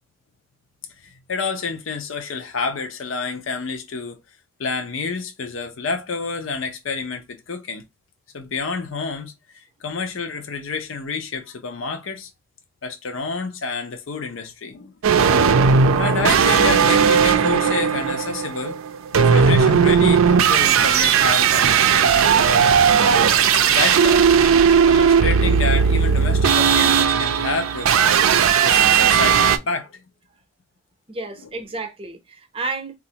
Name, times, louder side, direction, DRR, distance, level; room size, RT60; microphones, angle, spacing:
voice 1, 1.0-4.2 4.6-7.8 8.3-12.3 12.8-14.9 15.9-18.8 19.1-22.8 23.5-24.3 24.9-28.2 28.6-30.0 31.4-31.5, left 4 dB, 75° left, 0.6 m, -29 dB
sound 1, 15.0-29.6, right 6 dB, 85° right, 0.4 m, -16 dB
voice 2, 31.1-33.0, right 3 dB, 25° right, 0.6 m, -33 dB
4.0 x 2.4 x 2.8 m
head